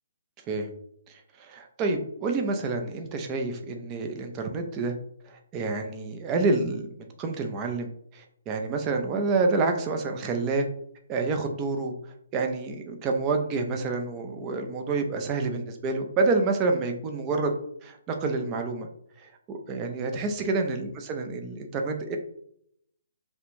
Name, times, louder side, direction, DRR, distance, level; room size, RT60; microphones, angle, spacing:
voice 1, 1.4-4.9 5.3-6.8 7.2-10.7 11.1-11.9 12.3-17.5 17.8-18.9 19.2-22.2, right 3 dB, 25° right, 3 dB, 0.4 m, -28 dB
2.4 x 2.0 x 3.0 m, 0.70 s
figure-of-eight pair, 140°, 0 cm